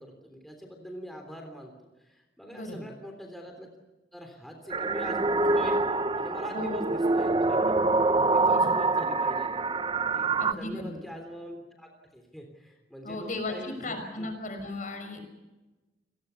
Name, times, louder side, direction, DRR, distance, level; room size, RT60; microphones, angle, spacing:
voice 1, 0.0-3.7 4.1-5.8 6.2-7.7 8.3-9.6 10.1-14.3, equal, ahead, 3 dB, 3.4 m, -43 dB
voice 2, 2.5-2.9 6.5-6.8 8.5-8.7 10.4-10.9 13.0-15.4, left 2 dB, 45° left, 6 dB, 5.8 m, -36 dB
sound 1, 4.7-10.5, right 3 dB, 30° right, 0.8 m, -25 dB
29.0 x 19.0 x 7.0 m, 1.1 s
head